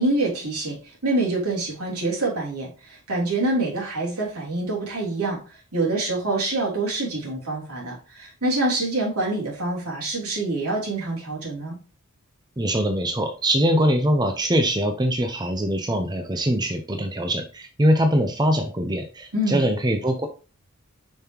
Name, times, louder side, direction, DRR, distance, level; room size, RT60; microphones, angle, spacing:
voice 1, 0.0-5.4 5.7-11.8 19.3-19.7, right 2 dB, 85° right, -4 dB, 3.4 m, -26 dB
voice 2, 12.6-20.3, equal, 20° right, 5 dB, 0.7 m, -22 dB
7.0 x 5.5 x 2.9 m, 0.34 s
head